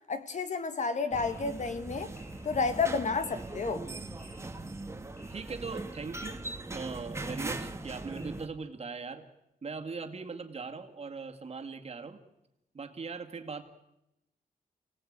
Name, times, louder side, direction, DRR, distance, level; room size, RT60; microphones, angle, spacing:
voice 1, 0.1-2.1 2.4-3.8, left 4 dB, 50° left, 1.7 m, -31 dB
sound 1, 1.1-8.5, right 2 dB, 15° right, 1.4 m, -40 dB
sound 2, 1.2-8.3, left 2 dB, 70° left, 7.4 m, -58 dB
voice 2, 5.3-9.2 9.6-12.2 12.7-13.6, right 4 dB, 40° right, 2.2 m, -40 dB
29.5 x 18.0 x 8.9 m
wide cardioid pair, 155°, 16 cm